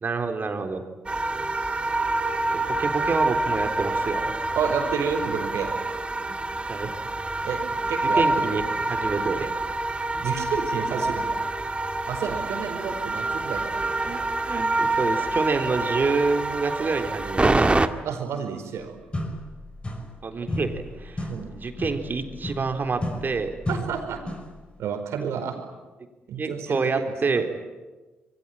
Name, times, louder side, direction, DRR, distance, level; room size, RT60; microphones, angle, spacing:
voice 1, 0.0-0.8 2.7-4.3 6.2-6.3 6.7-6.9 7.7-7.8 8.2-8.6 8.9-9.5 10.1-10.2 14.0-17.8 20.2-23.5 26.4-27.5, right 4 dB, 40° right, 6 dB, 3.8 m, -27 dB
sound 1, 1.1-17.9, right 2 dB, 20° right, 1.9 m, -26 dB
voice 2, 4.5-5.7 7.4-7.6 7.9-8.7 10.2-11.4 12.1-14.0 18.0-18.9 21.3-21.5 23.7-24.2 24.8-25.6 26.3-27.4, right 7 dB, 60° right, 5 dB, 4.9 m, -30 dB
sound 2, 18.7-18.8 19.1-20.2 20.5-24.6, left 1 dB, 20° left, 5.6 m, -33 dB
27.5 x 23.0 x 9.1 m, 1.2 s
figure-of-eight pair, 40°, 5 cm